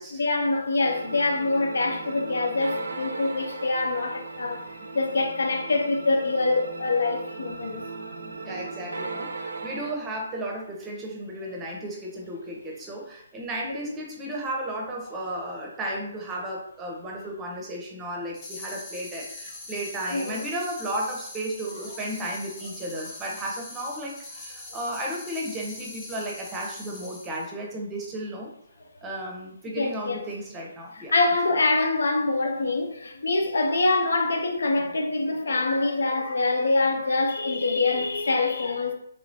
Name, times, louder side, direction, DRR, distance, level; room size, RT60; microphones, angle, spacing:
voice 1, 0.1-7.9 13.6-13.8 20.1-20.5 29.8-30.3 31.0-38.9, left 3 dB, 65° left, 0.4 m, -25 dB
sound 1, 0.8-9.9, right 3 dB, 75° right, 0.4 m, -37 dB
voice 2, 8.4-28.5 29.0-31.1, right 1 dB, 15° right, 0.7 m, -34 dB
sound 2, 18.3-27.5, left 2 dB, 20° left, 0.8 m, -42 dB
3.3 x 3.0 x 2.6 m
figure-of-eight pair, 135°, 0 cm